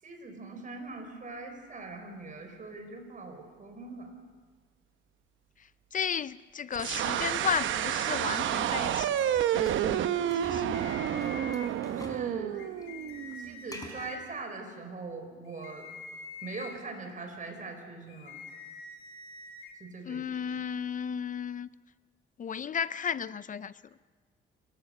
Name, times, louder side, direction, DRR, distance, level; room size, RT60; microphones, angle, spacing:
voice 1, 0.0-4.1 11.8-12.6 13.4-15.9 16.4-18.4 19.8-20.3, right 3 dB, 40° right, 5.0 m, -41 dB
voice 2, 5.9-10.7 20.1-21.7 22.4-23.7, left 7 dB, 40° left, 0.5 m, -34 dB
sound 1, 6.7-13.6, right 10 dB, 75° right, 0.9 m, -30 dB
sound 2, 9.2-12.3 12.6-14.2, left 2 dB, 20° left, 4.6 m, -48 dB
sound 3, 10.7-11.7 12.5-14.2 15.5-16.8 18.1-19.7, left 4 dB, 85° left, 3.2 m, -46 dB
28.5 x 15.0 x 6.7 m
cardioid pair, 90°, 20 cm